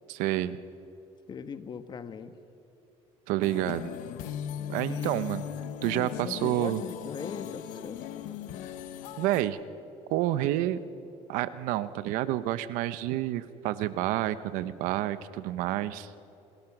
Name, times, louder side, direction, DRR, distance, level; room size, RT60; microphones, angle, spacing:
voice 1, 0.1-0.6 3.3-3.9 4.7-5.4 5.8-6.8 9.2-9.6 10.1-10.8 11.3-16.2, right 14 dB, 85° right, 14 dB, 0.9 m, -29 dB
voice 2, 1.3-2.3 4.9-5.2 6.2-8.0, left 6 dB, 35° left, 11 dB, 1.2 m, -39 dB
sound 1, 3.4-9.4, left 10 dB, 80° left, 1.1 m, -38 dB
26.5 x 20.5 x 6.1 m, 2.7 s
cardioid pair, 120°, 13 cm